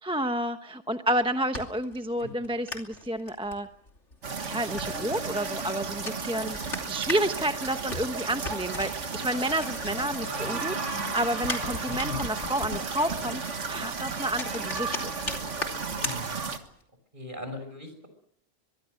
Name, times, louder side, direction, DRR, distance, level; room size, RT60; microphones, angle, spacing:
voice 1, 0.0-3.7 4.4-6.6 6.9-15.1, right 1 dB, 5° right, 7 dB, 0.8 m, -30 dB
sound 1, 1.1-10.3 10.6-16.8, left 2 dB, 60° left, 3.2 m, -39 dB
sound 2, 4.2-16.6, right 5 dB, 65° right, 1.9 m, -34 dB
sound 3, 9.3-12.8, left 5 dB, 45° left, 1.3 m, -41 dB
voice 2, 16.0-16.5 17.1-18.1, left 1 dB, 40° right, 8 dB, 5.9 m, -39 dB
23.5 x 22.0 x 6.5 m, 0.66 s
omnidirectional pair, 1.3 m